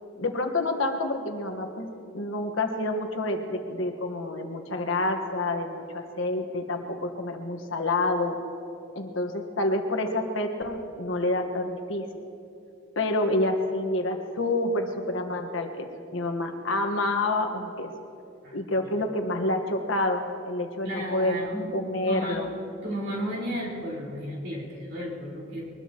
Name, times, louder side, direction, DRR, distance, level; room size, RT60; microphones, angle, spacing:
voice 1, 0.2-8.4 8.9-12.0 12.9-15.9 16.1-17.9 18.5-21.4 21.7-22.5, left 2 dB, 70° left, 4 dB, 1.4 m, -28 dB
voice 2, 20.8-21.7 22.0-22.4 22.8-25.7, equal, 55° right, -4 dB, 4.3 m, -33 dB
23.5 x 20.5 x 3.0 m, 2.7 s
head